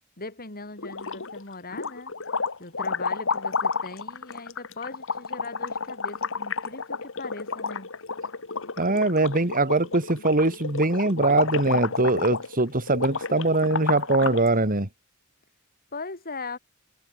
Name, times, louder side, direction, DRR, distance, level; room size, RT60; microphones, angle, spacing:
voice 1, 0.2-2.1 2.6-7.9 15.9-16.6, left 3 dB, 45° left, 6.1 m, -39 dB
sound 1, 0.8-1.4 1.7-14.5, left 4 dB, 65° left, 2.2 m, -31 dB
voice 2, 8.8-14.9, right 2 dB, 40° right, 3.2 m, -22 dB
head